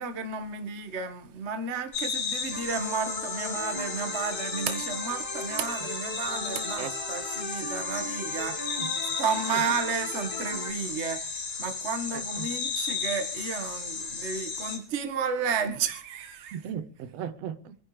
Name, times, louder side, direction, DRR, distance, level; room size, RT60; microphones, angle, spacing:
voice 1, 0.0-8.9 9.2-16.6, right 5 dB, 30° right, 1.4 m, -32 dB
sound 1, 1.9-14.8, left 5 dB, 85° left, 5.5 m, -34 dB
sound 2, 2.5-10.7, left 2 dB, 15° left, 2.6 m, -38 dB
voice 2, 12.1-12.5 16.5-17.8, right 9 dB, 65° right, 2.0 m, -37 dB
26.0 x 11.0 x 3.3 m
omnidirectional pair, 3.4 m